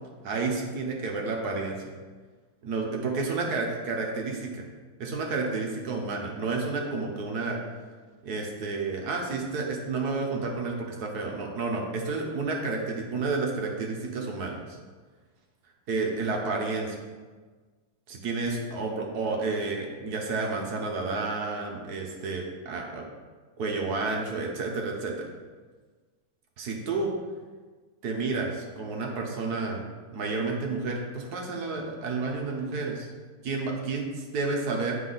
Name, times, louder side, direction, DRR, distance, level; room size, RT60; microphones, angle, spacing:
voice 1, 0.2-1.9 2.6-4.6 5.0-7.6 8.2-14.6 15.9-17.0 18.1-23.0 23.6-25.3 26.6-27.1 28.0-29.8 30.1-33.1 33.4-35.0, right 3 dB, 55° right, 0 dB, 1.2 m, -30 dB
7.9 x 5.5 x 3.9 m, 1.4 s
omnidirectional pair, 2.4 m